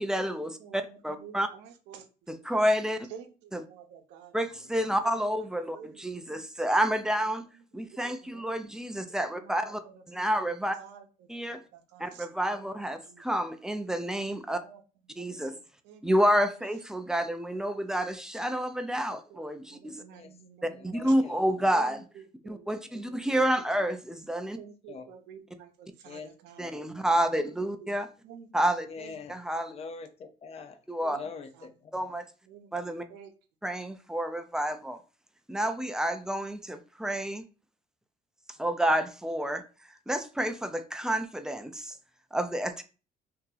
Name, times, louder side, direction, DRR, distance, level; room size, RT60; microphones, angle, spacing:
voice 1, 0.0-1.5 2.3-3.1 3.5-3.6 4.3-7.4 7.7-9.8 10.1-10.8 11.3-11.6 12.0-14.6 15.2-15.5 16.0-20.0 20.6-22.0 22.5-24.6 26.6-28.1 28.5-28.9 29.3-29.7 30.9-31.2 31.9-32.2 32.7-33.1 33.6-35.0 35.5-37.4 38.6-39.6 40.1-41.9 42.3-42.8, equal, 5° right, 0.4 m, -29 dB
voice 2, 0.6-2.5 3.1-4.7 5.0-6.7 7.5-8.6 9.1-10.5 10.8-13.2 14.6-14.8 15.1-16.1 16.6-16.8 17.2-17.3 19.3-21.3 21.8-23.2 23.6-23.9 24.6-26.7 27.5-28.5 29.0-29.2 29.7-29.8 31.1-31.2 31.5-31.7 32.1-32.2 32.5-33.3, right 8 dB, 90° right, 0.8 m, -51 dB
voice 3, 20.7-21.4 24.9-25.1 26.1-26.3 26.6-27.1 27.3-27.4 28.9-29.3 29.7-30.8 31.1-32.1, left 5 dB, 35° left, 0.6 m, -44 dB
2.8 x 2.8 x 3.8 m
cardioid pair, 110°, 17 cm